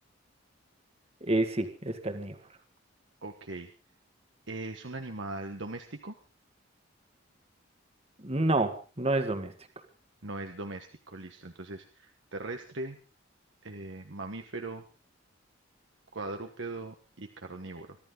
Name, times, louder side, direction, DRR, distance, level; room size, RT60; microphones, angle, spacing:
voice 1, 1.2-2.4 8.2-9.5, right 2 dB, 30° right, 7 dB, 1.9 m, -28 dB
voice 2, 3.2-3.7 4.5-6.2 10.2-13.0 13.6-14.8 16.1-18.0, right 2 dB, 65° right, 5 dB, 1.3 m, -40 dB
24.0 x 13.5 x 3.9 m, 0.34 s
head